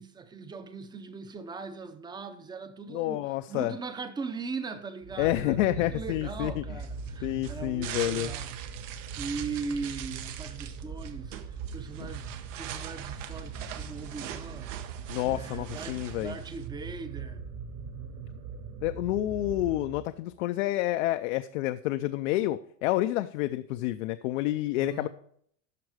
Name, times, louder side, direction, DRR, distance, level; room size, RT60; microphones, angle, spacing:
voice 1, 0.0-14.9 15.3-17.5 24.8-25.1, right 4 dB, 10° right, 0.5 m, -40 dB
voice 2, 2.9-3.7 5.2-6.6 7.2-8.3 12.0-12.1 15.1-16.4 18.8-25.1, left 16 dB, 80° left, 0.5 m, -29 dB
sound 1, 5.0-20.4, right 6 dB, 45° right, 1.1 m, -41 dB
sound 2, 6.8-16.7, right 11 dB, 90° right, 1.0 m, -42 dB
12.5 x 4.8 x 4.9 m
supercardioid pair, 150°, 37 cm